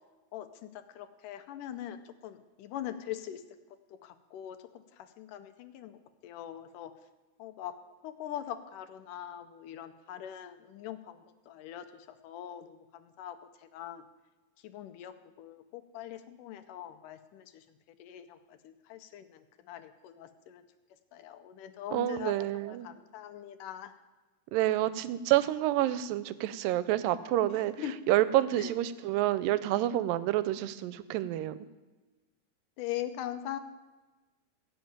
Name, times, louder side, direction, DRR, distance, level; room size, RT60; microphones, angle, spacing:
voice 1, 0.3-3.4 3.9-6.9 7.4-7.8 8.0-14.0 14.6-15.1 15.4-17.7 18.0-20.6 21.1-23.9 27.8-27.9 28.6-28.7 32.8-33.6, left 11 dB, 80° left, 9 dB, 2.2 m, -42 dB
voice 2, 21.9-22.9 24.5-27.8 28.1-31.6, right 14 dB, 90° right, 15 dB, 2.3 m, -28 dB
16.0 x 5.6 x 8.7 m, 1.2 s
omnidirectional pair, 3.9 m